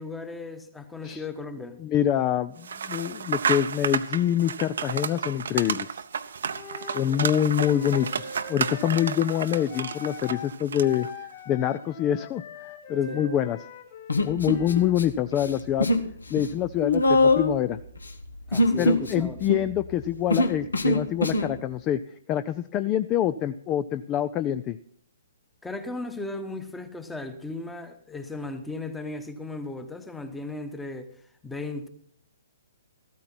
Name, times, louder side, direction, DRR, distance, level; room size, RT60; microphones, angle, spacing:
voice 1, 0.0-1.8 13.1-13.3 18.5-19.4 25.6-31.1 31.4-31.9, left 2 dB, 5° left, 1.1 m, -36 dB
voice 2, 1.8-6.0 6.9-11.1 11.5-13.6 14.2-15.9 16.3-17.8 18.8-22.0 22.3-24.8, left 11 dB, 25° left, 0.4 m, -26 dB
sound 1, 2.6-11.1, right 6 dB, 60° right, 0.7 m, -32 dB
Wind instrument woodwind instrument, 6.5-10.5 10.8-15.0, left 5 dB, 40° left, 3.6 m, -42 dB
Human voice, 14.1-15.0 15.3-16.1 16.3-21.5, left 2 dB, 70° left, 1.3 m, -23 dB
14.0 x 13.0 x 4.3 m
figure-of-eight pair, 125°, 0 cm